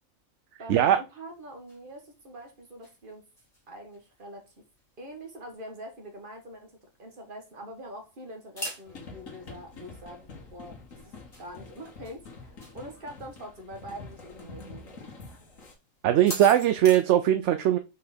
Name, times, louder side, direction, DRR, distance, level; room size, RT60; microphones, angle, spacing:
voice 1, 0.6-3.2 3.7-4.5 5.0-10.2 10.5-11.1 11.4-15.1, right 1 dB, 40° right, 1.7 m, -44 dB
sound 1, 1.2-17.0, equal, 30° left, 2.4 m, -47 dB
sound 2, 8.8-15.7, left 3 dB, 80° left, 1.9 m, -47 dB
voice 2, 16.0-17.8, right 11 dB, 65° right, 0.8 m, -20 dB
5.2 x 4.3 x 4.3 m
omnidirectional pair, 1.4 m